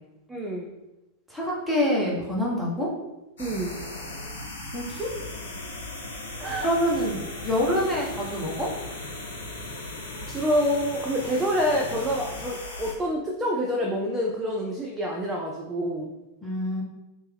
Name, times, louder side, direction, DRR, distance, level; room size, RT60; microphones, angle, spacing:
voice 1, 0.3-0.7 3.4-3.8 6.4-6.7 10.3-16.1, equal, 15° right, -1 dB, 0.5 m, -27 dB
voice 2, 1.3-2.9 4.7-5.1 6.6-8.7 16.4-16.8, equal, ahead, -5 dB, 1.1 m, -26 dB
sound 1, 3.4-12.9, left 2 dB, 65° left, 0.7 m, -37 dB
3.2 x 2.8 x 3.4 m, 0.98 s
figure-of-eight pair, 90°, 0 cm